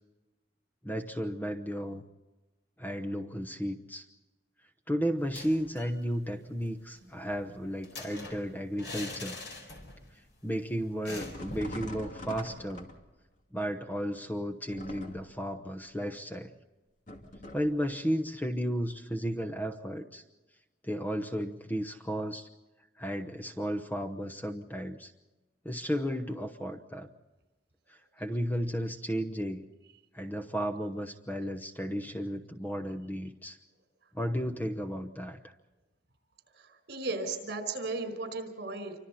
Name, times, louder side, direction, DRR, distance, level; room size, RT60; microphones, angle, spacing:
voice 1, 0.8-2.0 2.8-4.1 4.9-9.4 10.4-12.9 13.5-16.5 17.5-20.2 20.8-22.5 23.0-25.1 25.6-27.1 27.9-29.7 30.1-33.6 34.1-35.5, equal, 10° left, 6 dB, 1.0 m, -34 dB
sound 1, 5.2-6.0 6.3-6.4 6.7-10.1 10.4-10.5 11.0-11.8, left 2 dB, 65° left, 4.7 m, -44 dB
sound 2, 11.2-13.3 14.7-15.5 17.1-17.8, left 1 dB, 40° left, 2.5 m, -43 dB
voice 2, 36.9-38.9, right 3 dB, 60° right, 8 dB, 4.9 m, -35 dB
28.0 x 25.5 x 4.2 m, 1.1 s
head